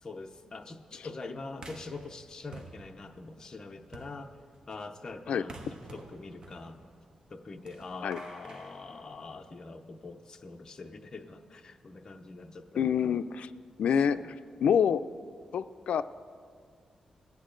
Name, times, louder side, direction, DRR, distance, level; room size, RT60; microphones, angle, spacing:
voice 1, 0.0-4.4 4.7-6.8 7.3-13.2 14.1-14.3, left 3 dB, 30° left, 4 dB, 0.6 m, -44 dB
sound 1, 1.6-9.7, right 2 dB, 40° right, 1.1 m, -51 dB
voice 2, 12.8-13.5 13.8-14.2 14.6-15.0 15.5-16.0, left 8 dB, 80° left, 12 dB, 0.3 m, -26 dB
20.5 x 8.3 x 3.8 m, 2.1 s
wide cardioid pair, 130°, 2 cm